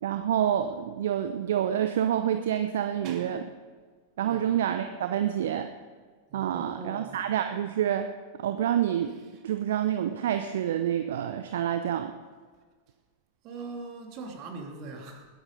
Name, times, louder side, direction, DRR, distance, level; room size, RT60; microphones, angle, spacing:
voice 1, 0.0-3.4 4.2-5.7 6.3-8.1 8.4-9.1 9.4-12.1, right 10 dB, 60° right, 9 dB, 0.7 m, -27 dB
voice 2, 6.3-7.2 13.4-15.3, right 3 dB, 40° right, 3 dB, 2.5 m, -41 dB
20.5 x 10.5 x 5.2 m, 1.5 s
figure-of-eight pair, 90°, 0 cm